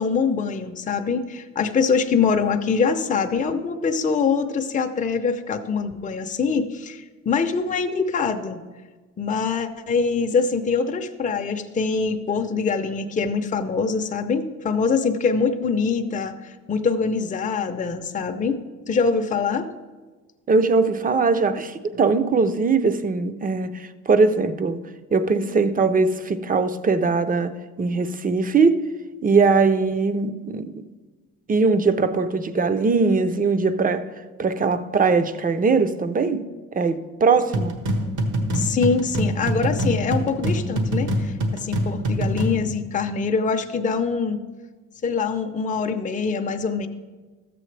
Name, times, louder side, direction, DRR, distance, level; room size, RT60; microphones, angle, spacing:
voice 1, 0.0-8.6 9.2-18.6 18.9-19.7 38.5-44.4 45.0-46.9, left 5 dB, 25° left, 0.6 m, -24 dB
voice 2, 20.5-28.8 29.2-30.8 31.5-34.1 34.4-37.8, right 4 dB, 30° right, 0.6 m, -21 dB
sound 1, 37.5-42.6, equal, 75° right, 1.4 m, -24 dB
13.5 x 7.7 x 3.3 m
cardioid pair, 90°, 30 cm